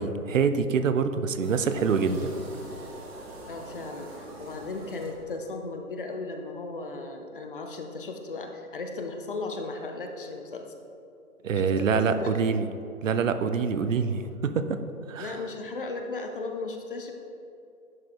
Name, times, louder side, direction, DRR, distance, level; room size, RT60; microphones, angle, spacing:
voice 1, 0.0-2.3 11.4-12.7 13.0-14.8 15.1-15.4, right 5 dB, 60° right, 10 dB, 0.5 m, -25 dB
sound 1, 1.4-5.6, right 1 dB, 45° right, 1.2 m, -43 dB
voice 2, 3.5-10.6 11.6-12.3 15.2-17.1, left 3 dB, 40° left, 4 dB, 0.5 m, -36 dB
10.5 x 4.8 x 2.3 m, 2.7 s
figure-of-eight pair, 145°, 44 cm